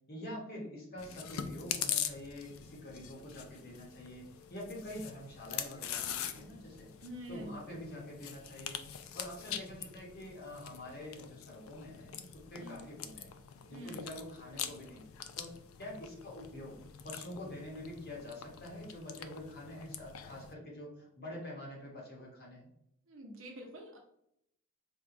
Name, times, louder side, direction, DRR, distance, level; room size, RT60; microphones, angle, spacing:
voice 1, 0.1-6.9 7.3-8.8 9.1-12.2 12.5-15.0 15.4-15.5 15.8-16.7 17.0-22.7, left 1 dB, 45° left, -3 dB, 1.0 m, -46 dB
Chewing mastication, 1.0-20.5, left 9 dB, 75° left, 0.3 m, -43 dB
voice 2, 7.0-7.8 12.6-12.8 13.7-14.0 23.1-24.0, equal, 65° right, 1 dB, 0.7 m, -46 dB
4.4 x 2.2 x 2.5 m, 0.74 s
head